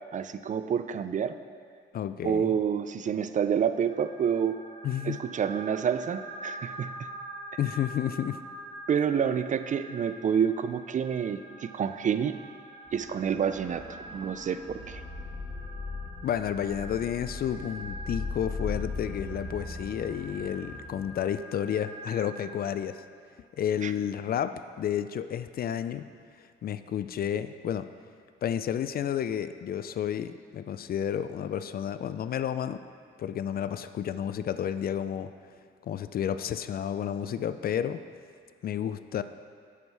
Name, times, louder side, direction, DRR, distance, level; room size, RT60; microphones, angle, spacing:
voice 1, 0.1-1.3 2.2-4.6 5.0-7.1 8.9-12.4 12.9-13.9 14.1-15.0 23.8-23.9, right 7 dB, 40° right, 11 dB, 0.4 m, -28 dB
voice 2, 1.9-2.5 4.8-5.2 7.6-8.4 16.2-23.0 23.6-26.1 26.4-27.9 28.4-32.8 33.2-35.3 35.8-38.0 38.6-39.2, left 9 dB, 50° left, 12 dB, 0.4 m, -31 dB
sound 1, 3.9-22.6, right 1 dB, 55° right, 1.6 m, -45 dB
sound 2, 12.9-21.1, left 3 dB, 5° left, 1.6 m, -39 dB
8.3 x 7.2 x 4.6 m, 2.1 s
cardioid pair, 90°, 20 cm